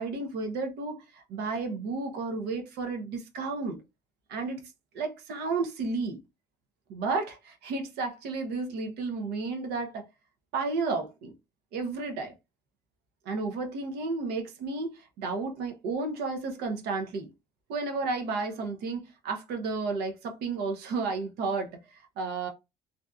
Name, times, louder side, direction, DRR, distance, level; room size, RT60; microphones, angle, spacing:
voice 1, 0.0-3.8 4.3-6.2 6.9-10.0 10.5-11.3 11.7-12.3 13.3-17.3 17.7-22.5, right 3 dB, 90° right, 0.6 m, -32 dB
2.6 x 2.4 x 2.3 m
cardioid pair, 110°, 16 cm